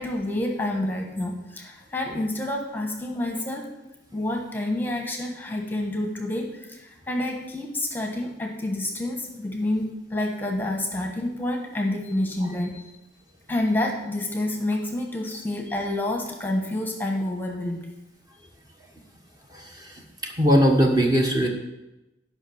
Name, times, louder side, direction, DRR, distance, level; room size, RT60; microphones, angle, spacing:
voice 1, 0.0-3.7 4.1-13.0 13.5-17.9, left 1 dB, 10° left, 1 dB, 1.2 m, -28 dB
voice 2, 19.5-21.5, equal, 20° right, 1 dB, 1.3 m, -21 dB
11.0 x 5.8 x 6.4 m, 0.99 s
head